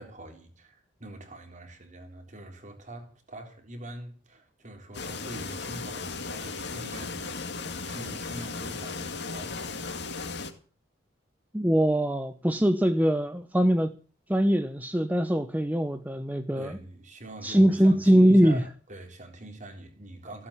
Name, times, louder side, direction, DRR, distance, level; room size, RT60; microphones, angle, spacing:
voice 1, 0.0-9.9 10.3-10.6 16.5-20.5, right 1 dB, 40° right, 3.8 m, -44 dB
sound 1, 4.9-10.5, left 4 dB, 65° left, 2.2 m, -36 dB
voice 2, 11.5-13.9 14.3-16.7 17.4-18.6, equal, 10° right, 0.9 m, -22 dB
16.0 x 8.6 x 8.7 m
head